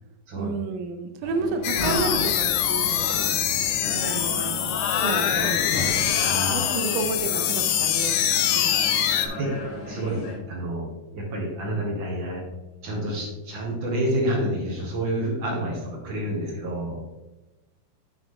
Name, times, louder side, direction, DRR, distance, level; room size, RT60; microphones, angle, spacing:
voice 1, 0.4-3.3 4.0-6.2 6.5-9.0, right 4 dB, 80° right, 7 dB, 2.5 m, -32 dB
sound 1, 1.2-10.3, left 2 dB, 50° left, 2.0 m, -34 dB
sound 2, 1.6-9.3, left 10 dB, 80° left, 1.9 m, -24 dB
voice 2, 6.2-6.6 9.4-9.5 9.8-10.2 10.5-10.8 11.1-12.4 12.8-17.0, right 1 dB, 55° right, -1 dB, 1.4 m, -28 dB
7.2 x 6.2 x 3.7 m, 1.0 s
omnidirectional pair, 4.1 m